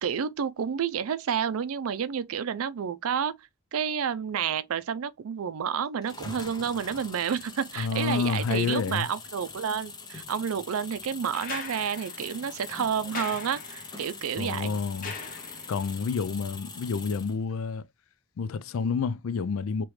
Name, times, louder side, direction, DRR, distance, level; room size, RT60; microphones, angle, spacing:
voice 1, 0.0-3.4 3.7-14.8, right 7 dB, 80° right, 0.4 m, -30 dB
sound 1, 6.0-17.4, left 4 dB, 20° left, 0.7 m, -43 dB
voice 2, 7.8-9.1 14.4-15.1 15.7-17.8 18.4-19.8, left 5 dB, 70° left, 0.4 m, -29 dB
sound 2, 11.3-15.9 17.5-17.6, left 4 dB, 40° left, 1.0 m, -41 dB
4.9 x 3.0 x 3.1 m
head